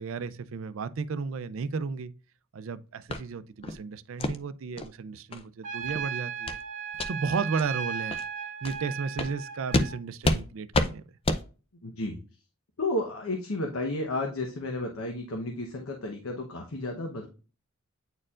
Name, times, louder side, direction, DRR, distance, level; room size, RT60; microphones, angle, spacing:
voice 1, 0.0-2.1 2.5-6.6 7.1-8.2 8.6-11.0, right 5 dB, 70° right, 0.4 m, -34 dB
sound 1, 3.1-3.2 3.6-3.8 4.2-4.4 4.8-4.9 5.3-5.4 5.8-6.0 6.5-6.6 6.9-7.1 7.6-7.7 8.1-8.2 8.6-8.8 9.2-9.3 9.7-9.9 10.2-10.4 10.7-10.9 11.2-11.4, left 2 dB, 25° left, 0.5 m, -27 dB
Trumpet, 5.6-10.0, right 7 dB, 40° right, 1.0 m, -36 dB
voice 2, 11.8-12.2 12.8-17.3, left 2 dB, 80° left, 1.0 m, -32 dB
8.8 x 4.4 x 2.4 m
head